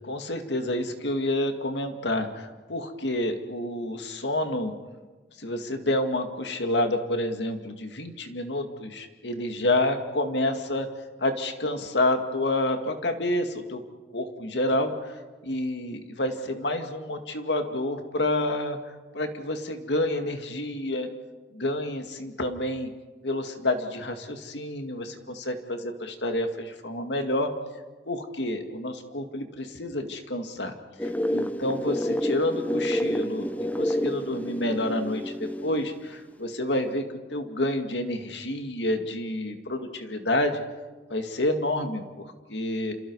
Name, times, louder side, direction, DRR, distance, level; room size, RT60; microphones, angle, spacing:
voice 1, 0.1-4.7 5.4-10.9 11.2-13.8 14.1-15.1 15.4-21.1 21.5-22.9 23.2-27.5 28.1-30.8 31.0-33.5 33.8-37.0 37.3-40.6 41.1-42.9, left 1 dB, 85° left, 6 dB, 2.2 m, -29 dB
sound 1, 31.0-36.0, equal, 10° left, 0.7 m, -29 dB
29.0 x 27.5 x 4.8 m, 1.3 s
head